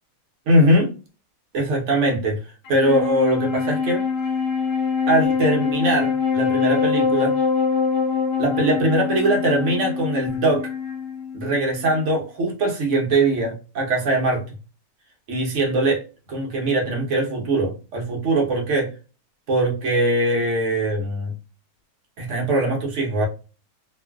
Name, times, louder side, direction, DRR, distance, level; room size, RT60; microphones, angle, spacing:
voice 1, 0.5-0.9 1.5-2.4 2.7-4.0 5.1-7.3 8.4-10.7 11.3-14.4 15.3-16.0 16.3-18.9 19.5-21.3 22.2-23.3, right 1 dB, 50° right, -1 dB, 1.1 m, -21 dB
Wind instrument woodwind instrument, 2.6-12.1, left 5 dB, 65° left, 0.6 m, -24 dB
3.1 x 2.4 x 2.3 m, 0.33 s
omnidirectional pair, 1.8 m